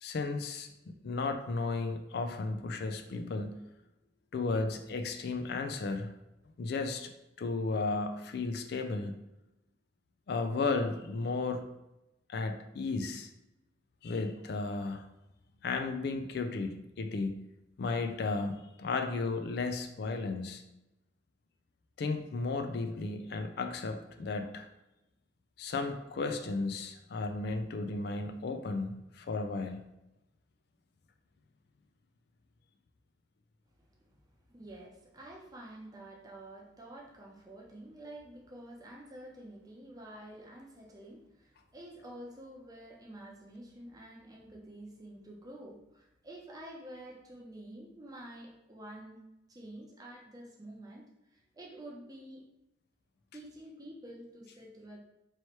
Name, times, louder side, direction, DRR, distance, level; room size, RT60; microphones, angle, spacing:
voice 1, 0.0-3.6 4.3-6.1 6.6-7.1 7.4-9.2 10.3-11.7 12.3-13.3 14.0-15.1 15.6-17.4 17.8-20.6 22.0-24.7 25.6-29.8, left 3 dB, 60° left, 6 dB, 0.3 m, -34 dB
voice 2, 34.5-49.2 49.5-52.4 53.3-55.0, right 1 dB, 20° right, -2 dB, 0.7 m, -49 dB
3.1 x 3.1 x 4.3 m, 0.92 s
head